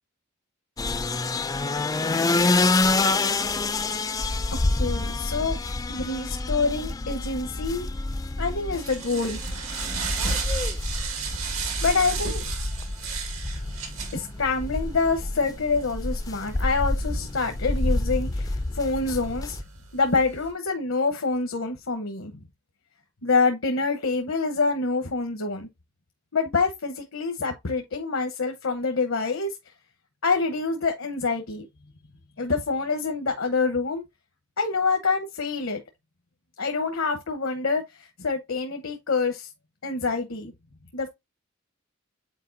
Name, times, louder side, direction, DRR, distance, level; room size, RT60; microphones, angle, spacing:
sound 1, 0.8-19.6, left 2 dB, 20° left, 0.4 m, -28 dB
voice 1, 4.7-5.6 5.9-7.9 8.4-9.4 11.8-12.5 14.1-19.6 19.9-22.3 23.2-25.7 26.3-29.5 30.2-31.7 32.4-34.0 34.6-35.8 36.6-39.5 39.8-40.5 40.9-41.1, left 4 dB, 75° left, 1.0 m, -26 dB
sound 2, 8.1-20.5, right 5 dB, 90° right, 2.0 m, -35 dB
8.3 x 4.5 x 2.6 m
head